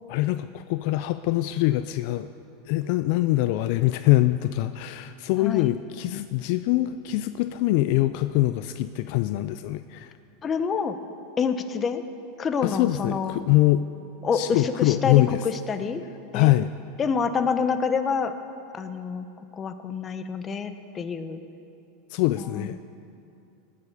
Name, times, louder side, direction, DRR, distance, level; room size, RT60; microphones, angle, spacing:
voice 1, 0.1-2.3 2.7-10.1 12.6-13.8 14.3-15.4 16.3-16.7 22.1-22.8, left 16 dB, 60° left, 11 dB, 0.4 m, -23 dB
voice 2, 5.4-5.7 10.4-11.0 11.4-12.0 12.4-13.4 14.2-16.0 16.3-16.5 17.0-18.3 18.7-19.3 19.5-21.4 22.5-22.7, left 6 dB, 25° left, 9 dB, 0.9 m, -27 dB
19.0 x 7.4 x 6.7 m, 2.6 s
supercardioid pair, 120°, 0 cm